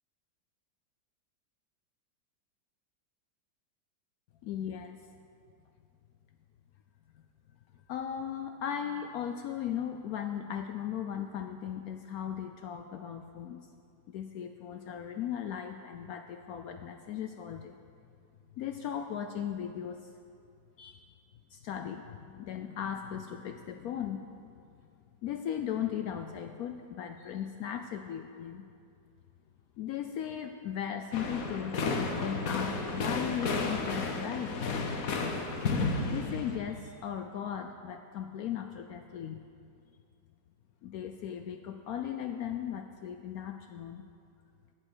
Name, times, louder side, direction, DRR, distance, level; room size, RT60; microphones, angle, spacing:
voice 1, 4.4-5.0 7.9-13.6 14.1-17.8 18.6-20.1 20.8-21.2 21.5-24.6 25.2-28.6 29.8-34.6 35.6-39.4 40.8-44.0, left 9 dB, 75° left, 6 dB, 0.8 m, -37 dB
sound 1, 31.1-36.6, left 3 dB, 55° left, 1.2 m, -32 dB
13.5 x 7.7 x 6.2 m, 2.4 s
omnidirectional pair, 2.0 m